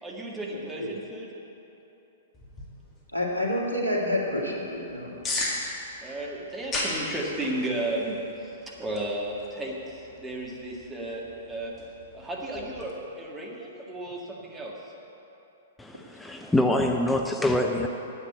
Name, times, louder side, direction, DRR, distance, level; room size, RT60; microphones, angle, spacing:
voice 1, 0.0-1.3 6.0-8.2 8.7-11.7 12.1-14.7, right 1 dB, 10° right, -3 dB, 1.9 m, -34 dB
voice 2, 0.5-0.9 3.1-5.1, left 1 dB, 85° right, -2 dB, 2.1 m, -28 dB
sound 1, 2.3-12.9, left 2 dB, 20° left, 2.1 m, -38 dB
voice 3, 15.8-17.9, left 1 dB, 5° left, 3 dB, 0.6 m, -25 dB
9.6 x 8.1 x 8.4 m, 3.0 s
figure-of-eight pair, 110°, 0 cm